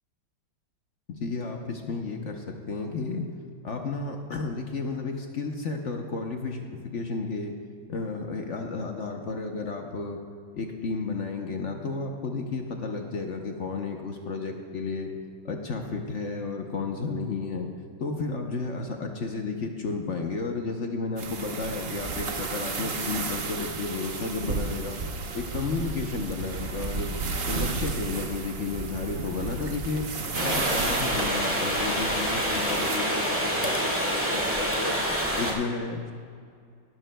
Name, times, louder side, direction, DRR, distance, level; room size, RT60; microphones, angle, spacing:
voice 1, 1.1-3.3 3.6-7.6 7.9-10.2 10.5-15.1 15.4-17.7 18.0-25.0 25.3-27.2 27.5-30.1 30.4-35.0 35.4-36.1, left 4 dB, 60° left, 3 dB, 0.7 m, -32 dB
sound 1, 21.2-33.0, right 4 dB, 80° right, 0.5 m, -33 dB
sound 2, 30.3-35.5, equal, 5° right, 1.6 m, -27 dB
18.5 x 12.5 x 2.2 m, 2.1 s
omnidirectional pair, 2.3 m